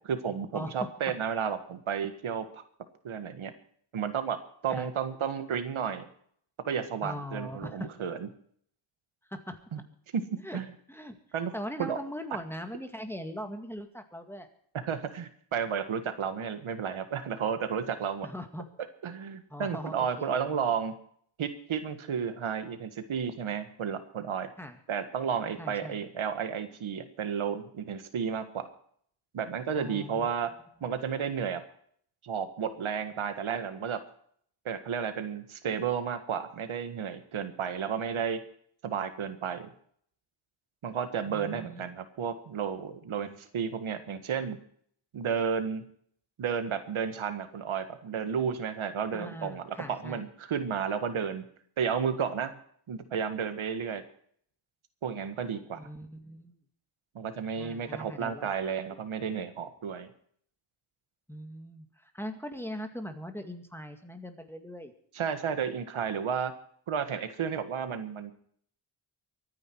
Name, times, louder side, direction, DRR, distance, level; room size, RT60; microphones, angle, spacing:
voice 1, 0.1-2.6 3.0-3.5 3.9-4.4 4.6-6.1 6.7-8.3 9.7-9.8 10.1-10.2 10.5-10.7 11.3-11.5 11.8-12.0 14.8-18.3 19.0-21.0 21.4-24.5 24.9-28.7 29.3-30.5 30.8-31.6 32.2-34.0 34.6-38.4 38.8-39.7 40.8-44.6 45.1-45.8 46.4-49.6 49.9-51.4 51.8-52.5 52.9-54.0 55.0-55.9 57.1-60.1 65.1-66.5 66.9-68.3, right 7 dB, 85° right, 9 dB, 1.7 m, -32 dB
voice 2, 7.0-7.9 9.3-9.6 10.4-10.6 10.9-11.2 11.5-14.5 18.2-18.7 19.5-20.4 24.6-24.8 25.6-26.0 29.8-30.3 41.3-41.8 49.1-50.3 55.8-56.6 57.5-58.7 61.3-64.9, equal, 5° left, 6 dB, 2.0 m, -40 dB
23.5 x 9.9 x 4.6 m, 0.62 s
wide cardioid pair, 110°, 47 cm